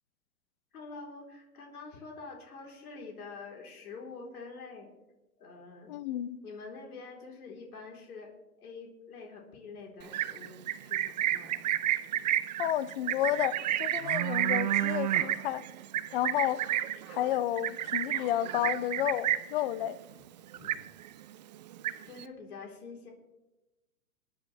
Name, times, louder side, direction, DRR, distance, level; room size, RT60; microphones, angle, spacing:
voice 1, 0.7-4.9 5.4-5.9 6.4-8.3 8.6-11.5 20.1-20.3 20.6-20.8 22.0-23.1, left 4 dB, 80° left, 3.7 m, -46 dB
voice 2, 5.9-6.4 12.6-15.7 16.1-16.7 17.1-20.0, left 12 dB, 40° left, 0.6 m, -31 dB
Livestock farm animals working animals, 10.0-19.6 20.0-20.3 20.5-21.2 21.5-22.2, right 12 dB, 35° right, 0.4 m, -31 dB
sound 1, 12.7-12.8 13.0-20.1, right 9 dB, 65° right, 1.3 m, -53 dB
26.5 x 9.9 x 3.3 m
hypercardioid pair, 140°, 44 cm